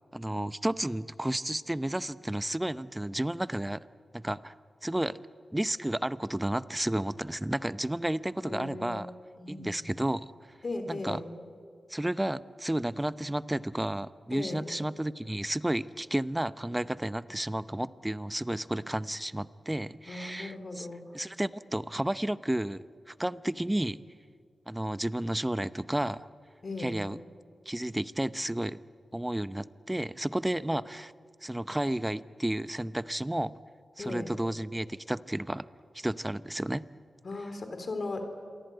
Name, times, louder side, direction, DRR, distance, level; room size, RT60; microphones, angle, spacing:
voice 1, 0.1-3.9 4.1-4.5 4.8-5.2 5.5-9.1 9.5-10.2 10.9-11.2 11.9-20.9 21.1-24.0 24.7-26.3 26.8-27.2 27.7-28.8 29.1-31.1 31.4-33.5 34.0-35.7 35.9-36.8, right 1 dB, 10° right, 15 dB, 0.7 m, -32 dB
voice 2, 8.4-9.1 9.4-9.9 10.6-11.3 14.3-14.7 20.1-21.2 26.6-27.0 34.0-34.3 37.2-38.4, left 2 dB, 55° left, 7 dB, 3.6 m, -37 dB
27.5 x 23.0 x 9.2 m, 2.2 s
cardioid pair, 70°, 0 cm